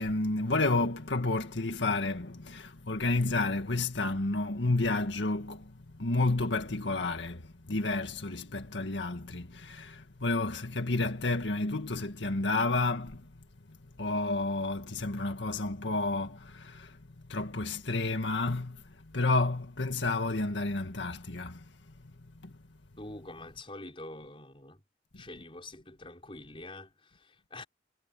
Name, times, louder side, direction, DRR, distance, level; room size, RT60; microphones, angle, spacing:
voice 1, 0.0-13.3 13.7-17.0 17.3-22.1 22.4-22.6 25.1-25.2, left 2 dB, 85° left, 1.9 m, -31 dB
voice 2, 23.0-24.8 25.2-27.6, left 2 dB, 30° left, 5.6 m, -46 dB
head